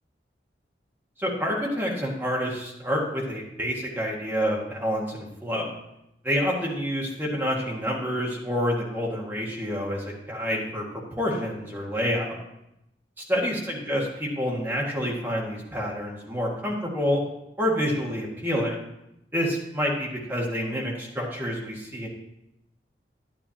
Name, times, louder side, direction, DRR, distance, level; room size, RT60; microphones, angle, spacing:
voice 1, 1.2-5.7 6.2-10.8 11.2-12.4 13.3-17.2 17.6-18.8 19.3-22.1, equal, 10° right, -3 dB, 1.8 m, -28 dB
11.0 x 10.0 x 2.9 m, 0.85 s
head